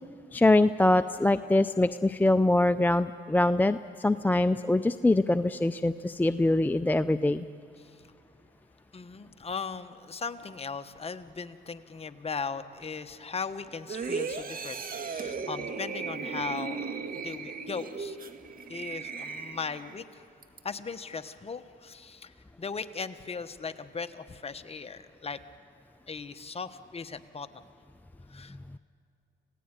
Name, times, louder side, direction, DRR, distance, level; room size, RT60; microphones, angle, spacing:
voice 1, 0.3-7.4, left 2 dB, 10° left, 11 dB, 0.4 m, -24 dB
voice 2, 8.9-17.0 17.2-18.2 18.7-20.2 20.6-25.4 26.1-27.6 28.3-28.6, left 5 dB, 30° left, 9 dB, 1.2 m, -38 dB
sound 1, 13.9-20.0 20.4-20.6, right 5 dB, 45° right, 1.7 m, -36 dB
27.5 x 17.5 x 9.1 m, 2.8 s
cardioid pair, 90°, 20 cm